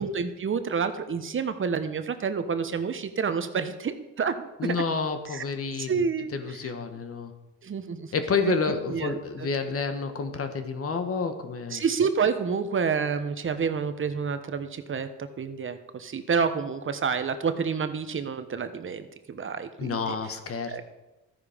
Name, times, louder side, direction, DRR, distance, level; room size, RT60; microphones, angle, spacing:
voice 1, 0.0-4.7 5.3-5.4 5.8-6.7 7.6-8.1 8.5-8.6 8.9-9.5 11.7-20.2 20.7-20.8, right 6 dB, 40° right, 9 dB, 1.1 m, -29 dB
voice 2, 4.6-6.1 6.3-7.3 8.1-11.8 19.8-20.8, left 5 dB, 50° left, 8 dB, 1.5 m, -29 dB
13.0 x 9.9 x 5.1 m, 1.0 s
cardioid pair, 90°, 30 cm